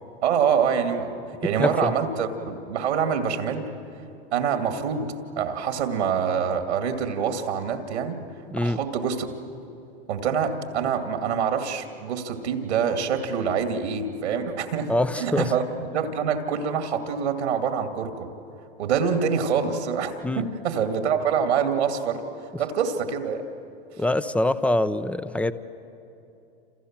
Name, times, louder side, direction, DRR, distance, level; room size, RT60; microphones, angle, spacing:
voice 1, 0.2-3.7 4.3-8.2 8.6-9.3 10.1-15.6 15.9-18.3 18.8-22.2 22.6-23.4, right 7 dB, 80° right, 6 dB, 2.5 m, -25 dB
voice 2, 1.6-1.9 8.5-8.8 14.9-15.5 20.2-20.5 24.0-25.5, left 1 dB, 5° left, 13 dB, 0.8 m, -24 dB
28.0 x 28.0 x 7.5 m, 2.8 s
hypercardioid pair, 105°, 34 cm